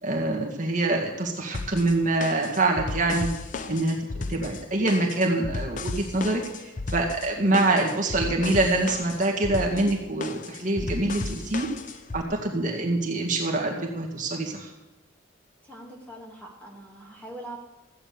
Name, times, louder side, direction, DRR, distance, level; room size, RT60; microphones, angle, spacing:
voice 1, 0.0-3.3 3.7-4.0 4.3-6.4 6.9-11.7 12.1-14.7, right 2 dB, 40° right, 0 dB, 2.1 m, -25 dB
sound 1, 1.5-12.2, left 3 dB, 40° left, 0.7 m, -34 dB
voice 2, 15.6-17.6, right 1 dB, 5° left, -2 dB, 2.6 m, -42 dB
15.0 x 8.9 x 6.9 m, 1.0 s
head